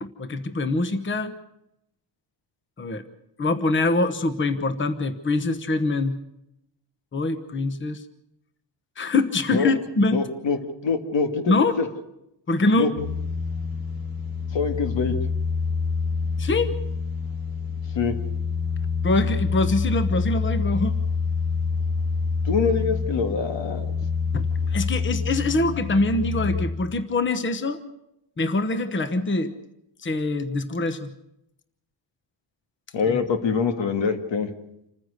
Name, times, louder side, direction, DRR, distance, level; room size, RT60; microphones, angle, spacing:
voice 1, 0.0-1.3 2.8-3.0 3.4-6.2 7.1-8.0 9.0-10.2 11.5-11.7 12.5-12.9 16.4-16.7 19.0-21.0 24.3-27.8 28.4-29.5 30.0-31.1 33.0-33.2, left 2 dB, 25° left, 10 dB, 1.1 m, -24 dB
voice 2, 10.1-11.9 12.8-12.9 14.5-15.1 18.0-18.2 22.4-23.9 32.9-34.5, left 5 dB, 85° left, 7 dB, 2.2 m, -24 dB
sound 1, 13.0-26.7, left 5 dB, 55° left, 2.8 m, -27 dB
27.5 x 15.0 x 6.6 m, 0.83 s
wide cardioid pair, 170°, 43 cm